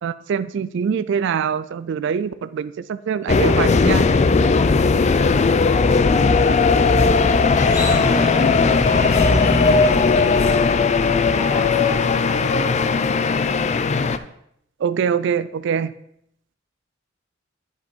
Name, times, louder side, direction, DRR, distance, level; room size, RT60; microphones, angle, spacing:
voice 1, 0.0-4.1 14.8-15.9, right 7 dB, 65° right, 15 dB, 0.3 m, -24 dB
sound 1, 3.3-14.2, left 4 dB, 35° left, 0.4 m, -17 dB
voice 2, 4.9-11.0 11.3-13.7, left 2 dB, 60° left, 2 dB, 1.0 m, -36 dB
sound 2, 5.9-6.3 7.8-8.4 9.6-10.4 11.1-13.5, right 3 dB, 25° right, 1.4 m, -43 dB
sound 3, 7.5-14.2, left 1 dB, 20° left, 1.5 m, -29 dB
10.5 x 5.5 x 4.4 m, 0.72 s
head